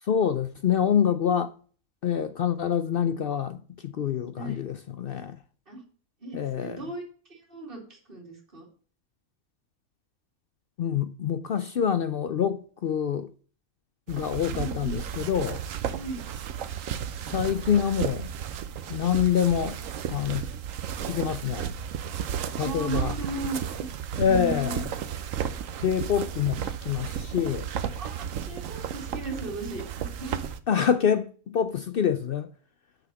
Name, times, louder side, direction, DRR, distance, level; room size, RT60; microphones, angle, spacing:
voice 1, 0.0-1.5 2.0-5.4 6.3-6.9 10.8-13.3 14.1-15.6 17.3-18.3 18.9-19.8 20.1-20.5 21.0-21.7 22.6-23.2 24.2-24.9 25.8-27.7 30.7-32.5, left 8 dB, 70° left, 0.5 m, -26 dB
voice 2, 6.2-7.0 7.3-8.7 14.1-14.2 14.5-15.0 15.9-16.2 22.6-23.9 24.2-24.8 28.0-30.4, right 2 dB, 35° right, 3.0 m, -36 dB
sound 1, 14.1-30.6, right 8 dB, 65° right, 1.1 m, -33 dB
7.0 x 5.9 x 7.1 m
omnidirectional pair, 1.5 m